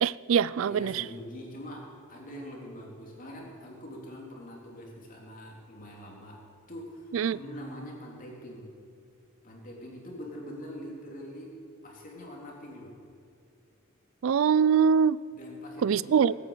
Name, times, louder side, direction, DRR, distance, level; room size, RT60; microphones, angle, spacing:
voice 1, 0.0-1.0 7.1-7.4 14.2-15.2 15.8-16.3, right 7 dB, 70° right, 21 dB, 0.3 m, -23 dB
voice 2, 0.6-6.4 6.7-8.7 9.4-11.6 11.8-12.9 15.3-16.2, equal, 40° left, -1 dB, 3.3 m, -43 dB
19.0 x 9.2 x 8.3 m, 2.3 s
head